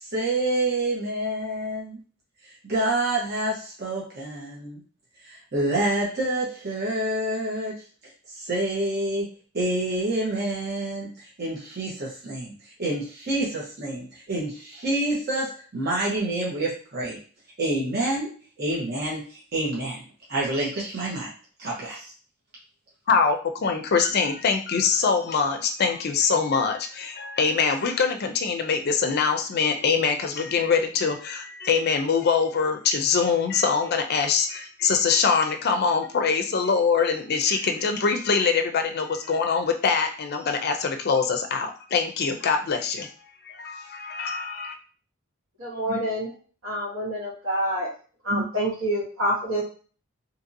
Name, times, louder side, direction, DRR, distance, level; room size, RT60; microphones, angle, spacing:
voice 1, 0.0-2.0 2.6-4.8 5.2-7.8 8.3-9.3 9.5-11.1 11.4-12.5 12.8-17.2 17.6-20.0 20.3-21.3 21.6-22.1, right 1 dB, 50° right, -5 dB, 0.9 m, -27 dB
voice 2, 23.1-43.1 43.5-44.7, left 5 dB, 50° left, 6 dB, 0.4 m, -23 dB
voice 3, 45.6-46.3 46.6-47.9 48.2-49.6, equal, 75° right, -7 dB, 1.2 m, -27 dB
2.8 x 2.7 x 2.6 m, 0.40 s
head